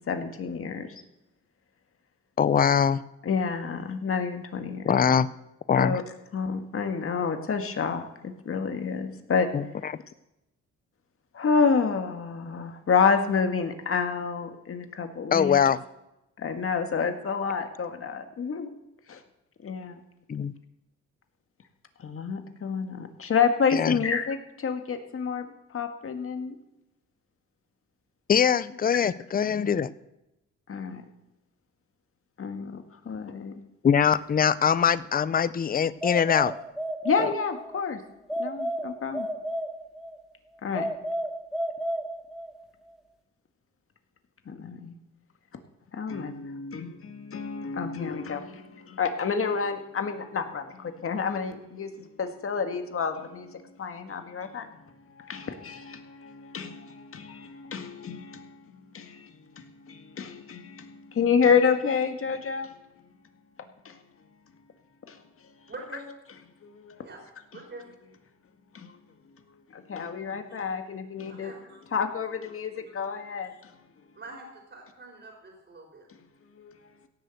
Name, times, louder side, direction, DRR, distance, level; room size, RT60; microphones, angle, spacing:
voice 1, 0.1-1.0 3.2-4.9 5.7-6.0 6.3-9.5 9.8-9.9 11.3-15.6 16.4-18.7 19.1-19.2 19.6-20.0 22.0-26.6 30.7-31.0 32.4-33.6 37.0-38.0 38.4-39.3 40.6-40.9 44.5-45.0 45.9-62.8 63.8-64.0 65.0-65.7 66.6-67.1 67.5-67.6 68.7-69.0 69.7-71.5 71.9-73.8 76.5-76.9, left 6 dB, 45° left, 1.9 m, -29 dB
voice 2, 2.4-3.0 4.9-5.3 5.7-6.0 9.5-9.6 15.3-15.8 20.3-20.5 23.7-24.0 28.3-29.9 33.8-36.5, left 7 dB, 30° left, 0.6 m, -22 dB
sound 1, 36.0-37.8 38.3-40.2 40.7-42.6, equal, ahead, 1.2 m, -32 dB
voice 3, 65.7-66.1 67.0-67.2 67.5-67.9 71.2-71.8 73.5-73.6 74.1-76.1, right 2 dB, 35° right, 4.2 m, -44 dB
16.5 x 6.7 x 7.9 m
cardioid pair, 90°, 30 cm